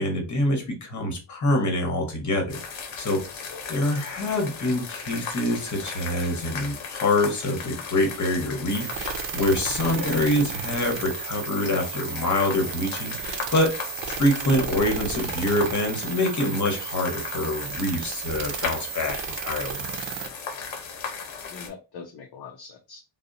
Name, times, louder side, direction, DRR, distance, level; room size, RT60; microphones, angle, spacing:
voice 1, 0.0-3.2 3.7-13.7 14.2-19.8, left 1 dB, 40° left, 2 dB, 0.9 m, -25 dB
sound 1, 2.5-21.7, left 5 dB, 85° left, 0.7 m, -37 dB
sound 2, 8.7-20.3, right 9 dB, 70° right, 0.6 m, -34 dB
voice 2, 21.1-23.0, left 5 dB, 60° left, 4 dB, 0.5 m, -44 dB
2.8 x 2.0 x 2.4 m, 0.30 s
wide cardioid pair, 120°, 46 cm